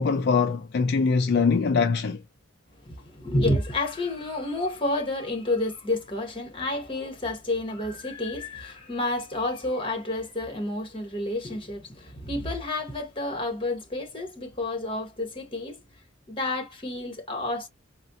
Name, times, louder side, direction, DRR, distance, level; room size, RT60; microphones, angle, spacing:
voice 1, 0.0-2.2, left 5 dB, 55° left, 0.4 m, -23 dB
voice 2, 2.8-15.8 16.3-17.7, left 2 dB, 25° left, 1.2 m, -30 dB
4.1 x 2.1 x 2.7 m
head